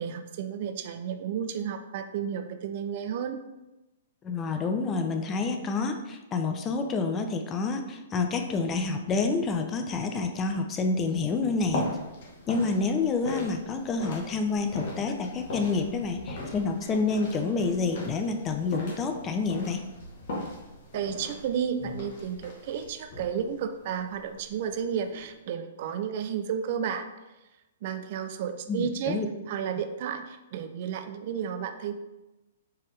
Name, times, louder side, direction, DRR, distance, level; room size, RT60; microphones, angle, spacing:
voice 1, 0.0-3.4 20.9-27.1 27.8-29.2 29.5-32.0, right 8 dB, 50° right, 8 dB, 0.4 m, -32 dB
voice 2, 4.2-11.9 12.5-19.8 28.7-29.3, left 4 dB, 25° left, 5 dB, 0.5 m, -28 dB
sound 1, 11.3-25.3, left 1 dB, 55° left, 1.1 m, -39 dB
4.5 x 3.5 x 3.2 m, 1.0 s
figure-of-eight pair, 115°, 0 cm